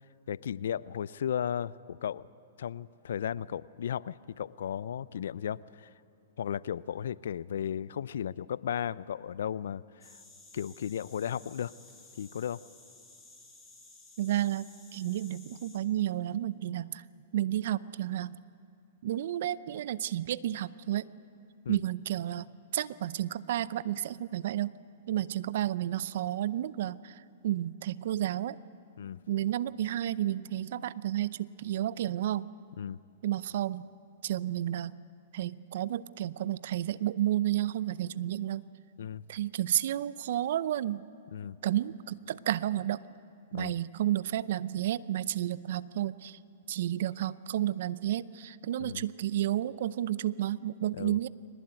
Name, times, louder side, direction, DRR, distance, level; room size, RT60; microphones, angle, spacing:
voice 1, 0.3-2.3 2.6-5.9 6.4-10.2 10.5-11.7 12.2-12.6 21.6-21.8 29.0-29.2 32.8-33.0 39.0-39.2 41.3-41.6 43.5-43.8 48.8-49.0 51.0-51.2, left 9 dB, 70° left, 20 dB, 0.5 m, -35 dB
sound 1, 10.0-15.8, left 3 dB, 10° left, 5.4 m, -55 dB
voice 2, 14.2-17.0 17.3-18.4 19.0-21.1 21.7-24.7 25.1-28.6 29.3-32.5 33.2-33.9 34.2-34.9 35.3-38.6 39.3-41.1 41.6-43.0 43.5-46.4 46.7-51.3, right 12 dB, 65° right, 18 dB, 0.6 m, -31 dB
22.5 x 19.0 x 9.1 m, 2.5 s
hypercardioid pair, 120°, 0 cm